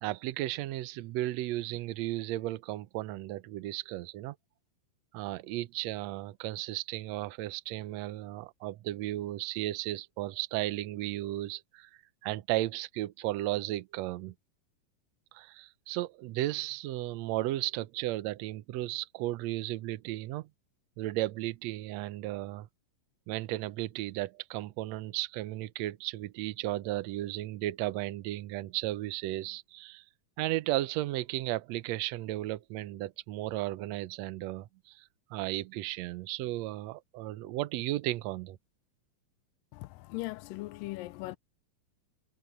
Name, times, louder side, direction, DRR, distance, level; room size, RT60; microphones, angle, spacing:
voice 1, 0.0-4.4 5.1-11.9 12.2-14.3 15.3-20.5 21.0-22.7 23.3-30.0 30.4-38.6, right 16 dB, 80° right, 1.5 m, -34 dB
voice 2, 39.7-41.4, left 20 dB, 85° left, 2.2 m, -39 dB
omnidirectional pair, 4.0 m